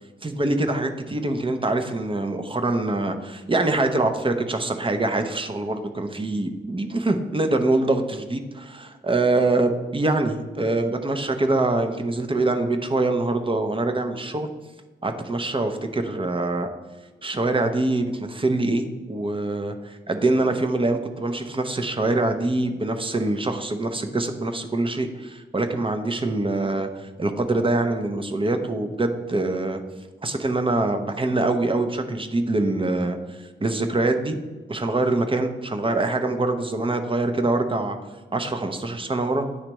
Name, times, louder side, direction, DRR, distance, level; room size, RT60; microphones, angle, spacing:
voice 1, 0.2-14.5 15.0-16.7 17.2-29.8 30.2-34.4 34.7-38.0 38.3-39.5, right 2 dB, 25° right, 6 dB, 0.6 m, -24 dB
9.7 x 3.3 x 3.0 m, 1.3 s
cardioid pair, 70°, 21 cm